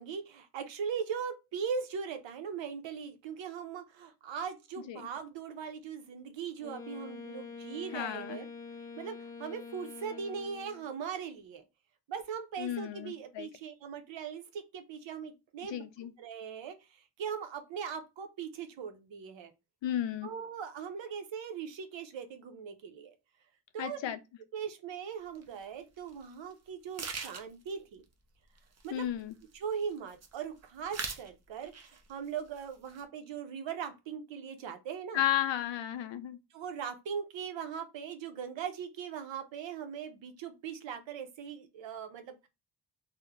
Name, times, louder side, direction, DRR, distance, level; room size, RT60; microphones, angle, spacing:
voice 1, 0.0-8.5 9.0-11.6 12.1-15.8 16.2-16.7 17.2-19.5 20.2-23.1 23.7-24.2 24.5-28.0 28.8-29.1 29.5-35.2 36.5-42.5, right 7 dB, 90° right, 0.7 m, -40 dB
Wind instrument woodwind instrument, 6.6-10.9, left 4 dB, 10° left, 0.4 m, -46 dB
voice 2, 7.9-8.4 12.6-13.5 15.7-16.1 19.8-20.3 23.8-24.2 28.9-29.3 35.1-36.4, left 11 dB, 90° left, 0.6 m, -33 dB
sound 1, 25.3-25.5 26.1-26.2 26.5-26.6 26.9-27.7 28.6-29.5 29.8-30.4 30.8-31.3 31.6-32.1 32.4-33.0, right 5 dB, 35° right, 0.6 m, -41 dB
2.9 x 2.1 x 3.5 m
wide cardioid pair, 110°, 43 cm